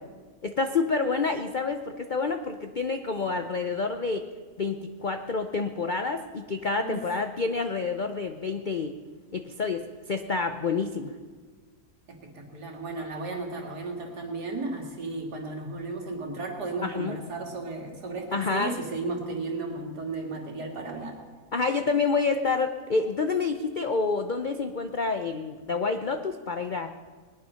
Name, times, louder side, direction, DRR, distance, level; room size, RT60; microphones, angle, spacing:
voice 1, 0.4-4.2 4.6-8.9 9.3-11.1 16.8-17.2 18.3-18.7 21.5-26.9, left 4 dB, 55° left, 7 dB, 0.5 m, -28 dB
voice 2, 12.1-21.2, right 3 dB, 75° right, 1 dB, 2.8 m, -34 dB
20.0 x 11.0 x 5.7 m, 1.5 s
omnidirectional pair, 1.7 m